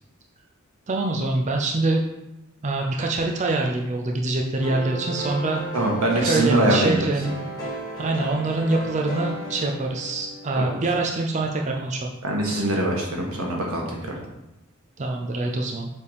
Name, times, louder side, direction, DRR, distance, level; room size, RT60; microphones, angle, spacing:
voice 1, 0.9-2.0 2.6-5.6 6.2-7.5 8.0-12.1 15.0-15.9, right 2 dB, 35° right, 1 dB, 0.5 m, -25 dB
sound 1, 4.6-10.5, right 2 dB, 20° left, 1.5 m, -34 dB
voice 2, 5.7-7.1 10.6-10.8 12.2-14.2, right 1 dB, 80° right, -1 dB, 1.6 m, -23 dB
6.9 x 3.5 x 4.9 m, 0.91 s
head